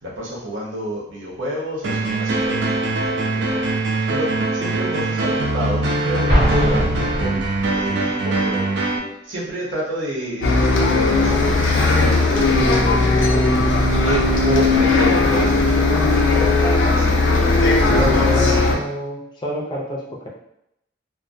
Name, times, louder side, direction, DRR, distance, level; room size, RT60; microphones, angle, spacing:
voice 1, 0.0-7.5 7.7-8.8 9.2-13.7 14.0-17.1 17.8-18.8, right 1 dB, 90° right, -5 dB, 0.8 m, -29 dB
sound 1, 1.8-9.0, right 2 dB, 65° right, 0.4 m, -22 dB
Explosion, 6.3-7.9, equal, 35° right, 0.8 m, -20 dB
Bus, 10.4-18.8, left 3 dB, 80° left, 0.4 m, -17 dB
voice 2, 17.8-20.3, equal, 25° left, -3 dB, 0.4 m, -28 dB
2.2 x 2.2 x 2.6 m, 0.80 s
head